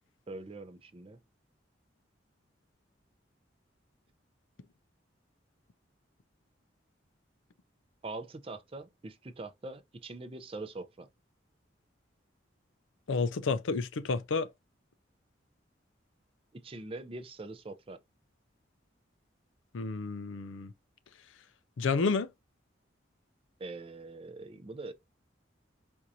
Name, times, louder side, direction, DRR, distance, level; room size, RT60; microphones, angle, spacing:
voice 1, 0.3-1.2 8.0-11.1 16.5-18.0 23.6-24.9, right 2 dB, 30° right, 0.5 m, -43 dB
voice 2, 13.1-14.5 19.7-20.7 21.8-22.3, left 4 dB, 85° left, 0.5 m, -30 dB
4.4 x 2.5 x 2.6 m
head